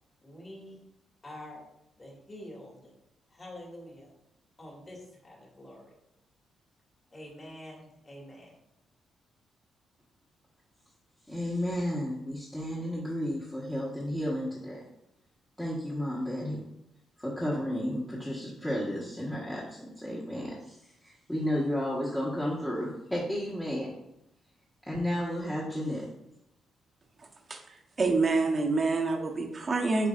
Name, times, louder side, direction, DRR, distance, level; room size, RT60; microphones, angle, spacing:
voice 1, 0.2-0.8 1.2-1.6 2.0-2.9 3.3-4.1 4.6-5.9 7.1-8.5, left 1 dB, 30° left, -3 dB, 2.3 m, -46 dB
voice 2, 11.3-14.8 15.6-16.6 17.2-23.9 24.8-26.1, equal, 10° left, -6 dB, 1.3 m, -32 dB
voice 3, 27.2-30.1, right 3 dB, 35° right, 2 dB, 1.0 m, -28 dB
8.1 x 4.8 x 2.5 m, 0.84 s
cardioid pair, 105°, 0 cm